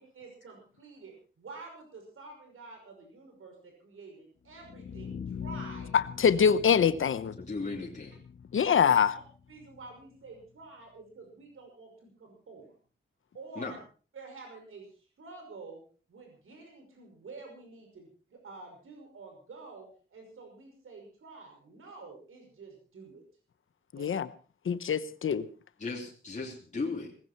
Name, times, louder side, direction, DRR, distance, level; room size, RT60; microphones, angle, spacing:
voice 1, 0.1-5.9 9.5-12.8 13.3-13.8 14.1-15.8 16.1-23.2 23.9-24.2 25.9-26.0, right 3 dB, 85° right, 3 dB, 5.8 m, -49 dB
sound 1, 4.5-10.5, left 7 dB, 60° left, 1.1 m, -44 dB
voice 2, 5.9-7.4 8.5-9.2 23.9-24.3 24.6-25.5, left 7 dB, 80° left, 14 dB, 1.1 m, -24 dB
voice 3, 7.4-8.2 13.6-13.7 25.8-27.1, left 3 dB, 35° left, -2 dB, 3.2 m, -36 dB
19.5 x 15.5 x 4.4 m, 0.39 s
wide cardioid pair, 130°, 21 cm